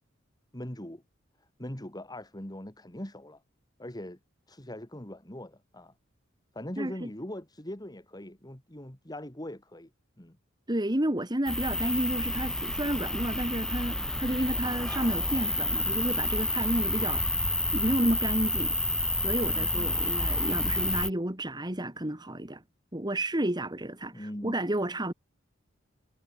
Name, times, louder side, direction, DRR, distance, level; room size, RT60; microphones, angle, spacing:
voice 1, 0.5-1.0 1.6-3.4 3.8-4.2 4.5-5.9 6.5-9.9 10.2-10.4 19.4-20.0 24.1-24.6, left 1 dB, 20° left, 2.9 m, -41 dB
voice 2, 10.7-17.2 17.7-18.7 19.2-22.6 22.9-25.1, right 1 dB, 20° right, 2.2 m, -31 dB
sound 1, 11.5-21.1, left 1 dB, 5° left, 0.3 m, -29 dB
head